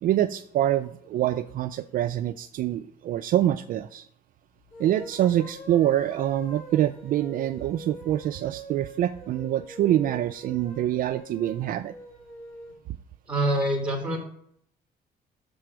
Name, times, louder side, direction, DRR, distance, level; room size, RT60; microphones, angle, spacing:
voice 1, 0.0-4.1 4.8-11.9, right 12 dB, 55° right, 10 dB, 0.4 m, -25 dB
sound 1, 4.6-12.8, right 2 dB, 55° left, 3.2 m, -43 dB
voice 2, 13.3-14.2, right 1 dB, 5° right, 1 dB, 3.1 m, -25 dB
6.8 x 4.6 x 6.2 m, 0.69 s
cardioid pair, 110°, 17 cm